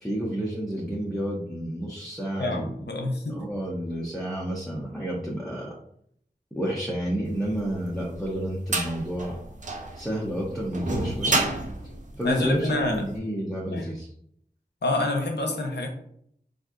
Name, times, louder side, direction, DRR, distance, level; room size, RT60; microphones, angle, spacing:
voice 1, 0.0-2.8 3.3-5.8 6.5-9.4 9.9-11.4 12.1-14.1, equal, ahead, -4 dB, 0.6 m, -30 dB
voice 2, 2.4-3.4 12.2-13.1 13.7-13.9 14.8-15.9, left 2 dB, 85° left, 3 dB, 0.6 m, -27 dB
sound 1, 7.6-13.0, right 2 dB, 45° right, 0.5 m, -29 dB
3.5 x 2.5 x 2.4 m, 0.68 s
wide cardioid pair, 45°, 17 cm